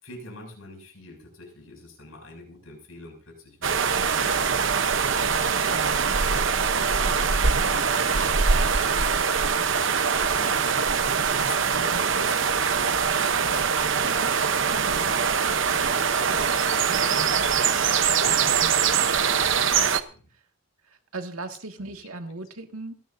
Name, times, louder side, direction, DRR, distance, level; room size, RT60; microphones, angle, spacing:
voice 1, 0.0-5.7 6.1-6.5 6.9-9.2 9.7-10.7 11.4-14.4 14.7-18.5 19.0-20.3 21.8-21.9, left 2 dB, 80° left, 2 dB, 6.8 m, -46 dB
sound 1, 3.6-20.0, right 6 dB, 60° right, 0.9 m, -23 dB
voice 2, 5.7-6.1 18.4-19.2 20.3-20.4 20.8-22.9, right 3 dB, 90° right, 5 dB, 2.0 m, -38 dB
28.5 x 10.5 x 2.7 m, 0.38 s
head